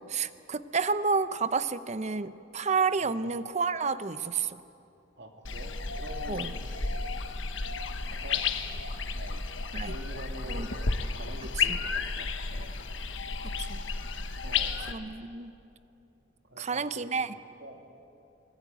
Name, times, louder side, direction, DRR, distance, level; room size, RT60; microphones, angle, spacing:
voice 1, 0.0-4.6 6.3-6.5 9.7-9.9 10.5-10.7 11.7-11.8 13.4-13.8 14.9-15.5 16.6-17.3, right 5 dB, 35° right, 13 dB, 0.7 m, -30 dB
voice 2, 3.0-3.3 5.2-6.6 8.0-8.4 9.1-9.4 9.8-12.8 14.4-14.8 16.4-17.3 17.6-17.8, right 1 dB, 60° right, 3 dB, 2.7 m, -46 dB
sound 1, 5.5-14.9, left 4 dB, 75° left, 1.3 m, -32 dB
25.0 x 20.5 x 9.1 m, 2.7 s
head